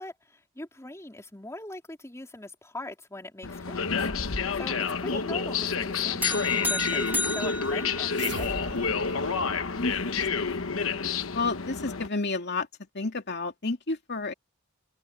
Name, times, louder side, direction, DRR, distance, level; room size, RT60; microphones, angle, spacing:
voice 1, 0.0-4.1 4.5-8.6, left 1 dB, 15° left, 3.6 m, -41 dB
sound 1, 3.4-12.1, left 5 dB, 70° left, 1.2 m, -29 dB
voice 2, 5.0-5.3 9.7-10.8 11.3-12.7 12.9-14.3, left 3 dB, 55° left, 2.7 m, -31 dB
sound 2, 6.2-8.7, left 1 dB, 10° right, 1.8 m, -32 dB
sound 3, 8.1-10.9, right 4 dB, 55° right, 1.2 m, -41 dB
open air
head